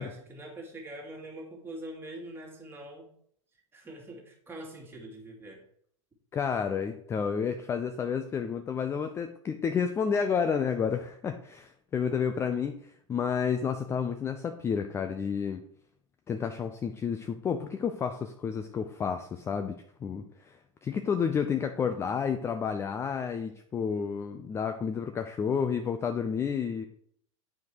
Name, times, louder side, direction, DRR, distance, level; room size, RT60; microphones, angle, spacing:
voice 1, 0.0-3.1 3.7-5.6, right 1 dB, 15° right, -1 dB, 2.3 m, -43 dB
voice 2, 6.3-12.8 13.1-15.6 16.3-26.9, left 6 dB, 15° left, 7 dB, 0.5 m, -30 dB
9.2 x 5.0 x 4.6 m, 0.65 s
figure-of-eight pair, 90°, 17 cm